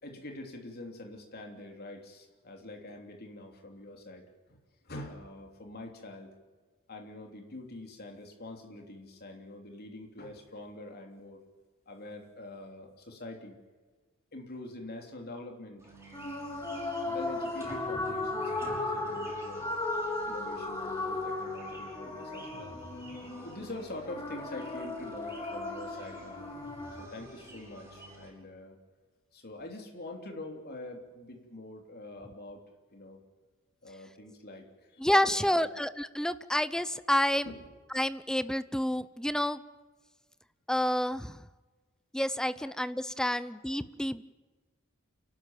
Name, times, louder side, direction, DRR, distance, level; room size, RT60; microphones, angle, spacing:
voice 1, 0.0-4.6 4.8-6.3 6.9-11.4 11.8-13.6 14.3-15.9 17.0-19.6 20.3-22.8 23.4-26.5 27.0-28.8 29.3-32.6 32.9-33.2 33.8-35.8 37.4-37.6 42.6-42.7 43.3-43.4, left 2 dB, 50° left, 3 dB, 3.3 m, -45 dB
sound 1, 15.8-28.3, right 1 dB, 15° right, 5.7 m, -50 dB
sound 2, 16.1-27.1, left 2 dB, 20° left, 3.0 m, -36 dB
voice 2, 35.0-37.5 37.9-39.6 40.7-41.3 42.1-44.2, left 1 dB, 5° left, 14 dB, 0.6 m, -29 dB
29.0 x 12.5 x 9.0 m, 1.3 s
head